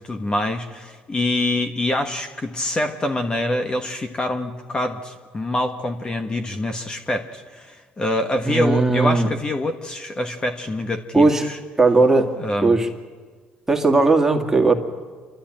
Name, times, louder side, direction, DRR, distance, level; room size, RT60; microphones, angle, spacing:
voice 1, 0.0-11.6 12.4-12.8, left 1 dB, 25° left, 6 dB, 1.4 m, -25 dB
voice 2, 8.5-9.3 11.1-11.5 11.8-12.3 12.6-12.9 13.7-14.8, right 3 dB, 15° right, 3 dB, 2.3 m, -17 dB
29.0 x 13.0 x 8.9 m, 1.5 s
supercardioid pair, 90°, 4 cm